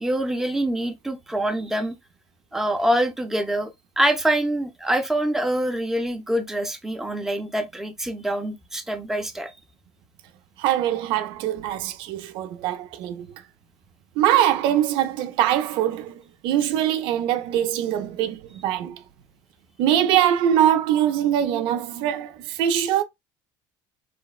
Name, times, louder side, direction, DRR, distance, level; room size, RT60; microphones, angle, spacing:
voice 1, 0.0-1.9 2.5-3.7 4.0-9.5, right 1 dB, 5° right, 0.5 m, -25 dB
voice 2, 10.6-13.3 14.2-19.0 19.8-23.0, right 11 dB, 70° right, 0.5 m, -22 dB
3.2 x 2.1 x 2.3 m
cardioid pair, 130°, 9 cm